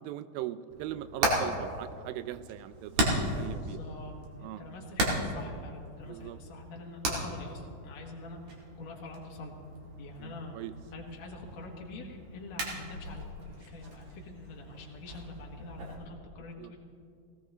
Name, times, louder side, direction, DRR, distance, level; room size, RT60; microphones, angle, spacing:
voice 1, 0.0-3.1 3.4-3.8 4.4-4.6 6.0-6.4 10.2-10.7 16.6-16.7, right 13 dB, 85° right, 13 dB, 2.3 m, -40 dB
Hammer, 0.7-15.9, right 1 dB, 55° right, 3.3 m, -36 dB
voice 2, 3.5-9.7 10.0-10.6 10.9-13.3 13.7-16.8, left 2 dB, 55° left, -1 dB, 2.6 m, -45 dB
19.5 x 17.0 x 3.0 m, 2.4 s
omnidirectional pair, 4.1 m